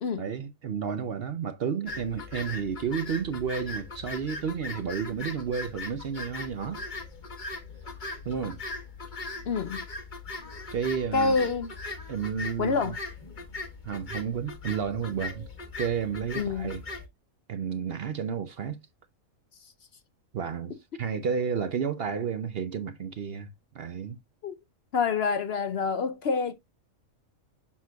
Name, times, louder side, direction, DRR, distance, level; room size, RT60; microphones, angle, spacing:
voice 1, 0.2-6.8 8.3-8.6 10.7-11.4 12.1-12.9 13.8-15.5 15.8-16.8 17.5-18.8 20.3-24.2, right 7 dB, 55° right, 0.7 m, -31 dB
sound 1, 1.9-17.1, left 3 dB, 35° left, 1.4 m, -39 dB
voice 2, 9.5-9.8 11.1-11.7 12.6-13.0 16.3-16.8 24.4-24.6 24.9-26.5, left 5 dB, 60° left, 0.8 m, -27 dB
7.4 x 6.0 x 2.3 m
omnidirectional pair, 1.4 m